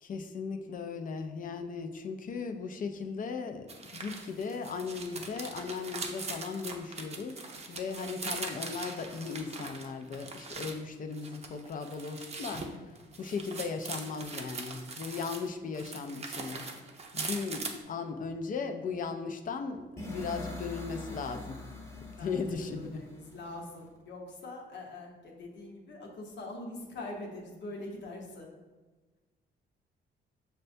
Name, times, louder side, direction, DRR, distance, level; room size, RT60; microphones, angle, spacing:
voice 1, 0.0-7.4 7.7-12.7 13.2-16.7 17.1-21.6 22.2-23.0, left 5 dB, 45° left, 6 dB, 0.4 m, -37 dB
sound 1, 3.7-10.8 11.1-15.5 15.7-17.8, right 3 dB, 30° right, 0.6 m, -41 dB
sound 2, 20.0-23.9, left 1 dB, 15° left, 0.9 m, -43 dB
voice 2, 22.2-28.5, left 2 dB, 65° left, 0 dB, 0.9 m, -43 dB
6.5 x 2.2 x 2.6 m, 1.3 s
cardioid pair, 90°, 20 cm